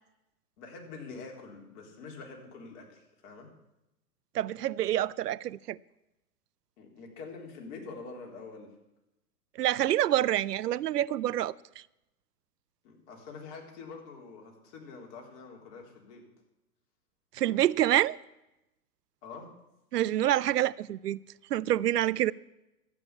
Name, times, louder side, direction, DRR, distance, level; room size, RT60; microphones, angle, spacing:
voice 1, 0.6-3.5 6.8-8.7 12.8-16.2 19.2-19.5, left 4 dB, 45° left, 3.9 m, -45 dB
voice 2, 4.3-5.8 9.6-11.5 17.3-18.2 19.9-21.2 21.5-22.3, right 13 dB, 80° right, 0.5 m, -27 dB
12.5 x 8.8 x 8.5 m
hypercardioid pair, 115°, 47 cm